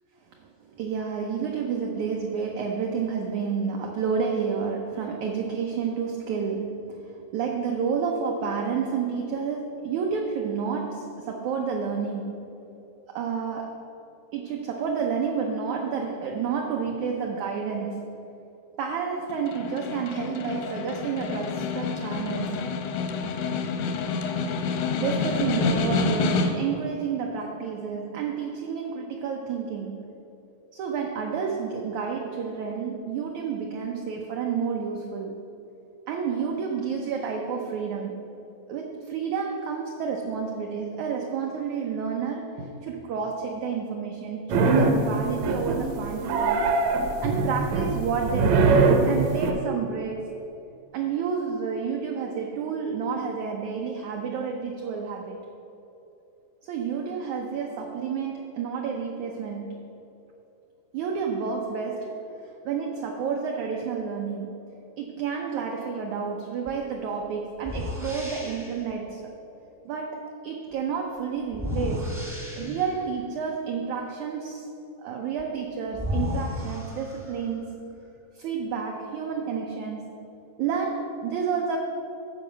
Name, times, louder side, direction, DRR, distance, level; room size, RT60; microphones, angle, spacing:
voice 1, 0.4-12.5 13.1-13.9 14.3-18.2 18.8-22.7 25.0-30.0 30.7-35.4 36.1-38.3 38.7-46.8 47.2-50.4 50.9-55.4 56.6-59.9 60.9-62.2 62.6-64.6 65.0-69.3 69.8-72.2 72.6-74.7 75.0-77.7 78.3-80.2 80.6-81.8, right 6 dB, 85° right, 1 dB, 1.6 m, -30 dB
Snare drum, 19.3-26.8, left 4 dB, 90° left, 2.8 m, -28 dB
sound 1, 44.5-45.1 45.4-45.9 46.2-49.5, right 4 dB, 70° right, 1.7 m, -22 dB
sound 2, 66.7-66.8 67.6-68.9 71.5-73.1 75.4-75.5 75.9-77.5, left 1 dB, 5° right, 0.4 m, -33 dB
12.5 x 4.9 x 7.2 m, 2.9 s
omnidirectional pair, 4.3 m